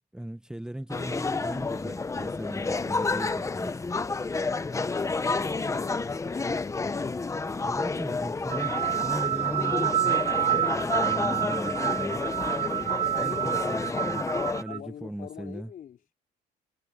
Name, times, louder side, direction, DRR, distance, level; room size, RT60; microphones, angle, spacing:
voice 1, 0.1-3.8 7.6-10.2 10.5-12.3 13.2-15.7, right 1 dB, 5° right, 1.2 m, -38 dB
sound 1, 0.9-14.6, left 3 dB, 20° left, 1.0 m, -30 dB
voice 2, 5.3-7.6 13.2-14.2 14.7-16.0, left 9 dB, 55° left, 4.4 m, -46 dB
sound 2, 8.5-14.8, right 12 dB, 40° right, 0.4 m, -28 dB
cardioid pair, 110°, 17 cm